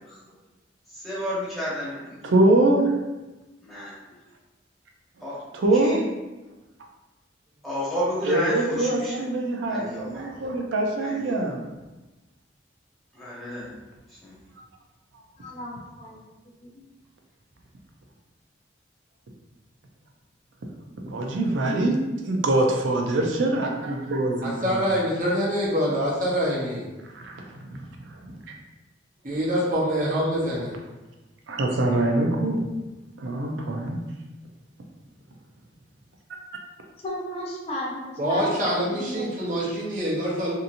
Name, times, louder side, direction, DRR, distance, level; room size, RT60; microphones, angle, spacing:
voice 1, 0.9-2.2 3.6-4.2 5.2-5.4 5.8-6.0 7.6-9.1 9.7-10.2 11.0-11.5 13.1-13.7 14.2-14.3, equal, ahead, -10 dB, 0.9 m, -31 dB
voice 2, 2.2-2.9 5.5-6.0 8.3-11.6 21.0-22.0 22.2-24.8 27.1-27.8 28.3-28.4 31.5-32.6 33.2-34.0, right 2 dB, 85° right, 1 dB, 0.5 m, -24 dB
voice 3, 15.4-16.3 16.7-16.8 37.0-39.3, equal, 35° left, -5 dB, 0.4 m, -34 dB
voice 4, 24.4-26.9 29.2-30.7 38.2-40.5, equal, 45° right, -6 dB, 0.8 m, -25 dB
2.8 x 2.6 x 2.5 m, 1.1 s
head